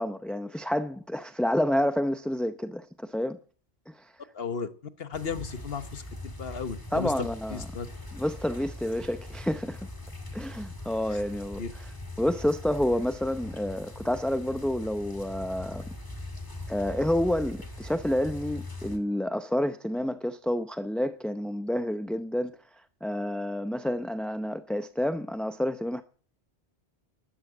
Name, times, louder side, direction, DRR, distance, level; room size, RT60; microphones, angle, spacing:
voice 1, 0.0-3.4 3.9-4.1 6.9-7.7 8.1-9.9 10.3-11.9 12.2-15.9 16.7-22.5 23.0-26.0, left 1 dB, ahead, 0.5 m, -29 dB
voice 2, 4.3-4.7 5.0-7.9 11.1-11.2 11.6-11.7, left 6 dB, 60° left, 1.3 m, -35 dB
sound 1, 5.1-19.0, left 1 dB, 20° left, 2.0 m, -41 dB
12.5 x 11.5 x 8.3 m
omnidirectional pair, 1.1 m